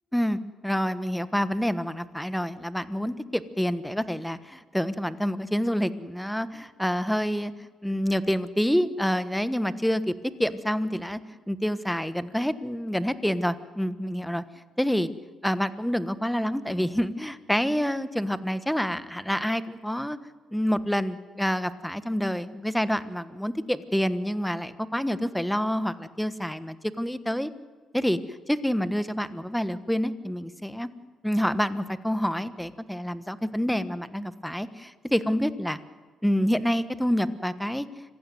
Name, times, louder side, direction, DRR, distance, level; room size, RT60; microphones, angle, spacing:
voice 1, 0.1-7.5 7.8-10.1 10.4-11.2 11.5-14.4 14.8-15.1 15.4-20.2 20.5-27.5 27.9-28.2 28.5-30.9 31.2-35.8 36.2-37.9, equal, ahead, 13 dB, 1.3 m, -27 dB
26.0 x 15.5 x 9.4 m, 1.5 s
cardioid pair, 90°, 0 cm